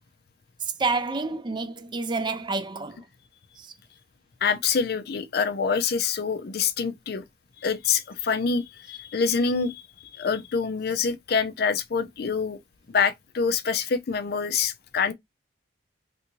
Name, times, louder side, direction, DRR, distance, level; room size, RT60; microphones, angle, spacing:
voice 1, 0.6-3.0 3.6-3.7, right 3 dB, 25° right, 0.4 m, -29 dB
voice 2, 4.4-7.2 7.6-12.6 12.9-15.1, left 5 dB, 55° left, 0.5 m, -26 dB
3.4 x 2.6 x 2.9 m
head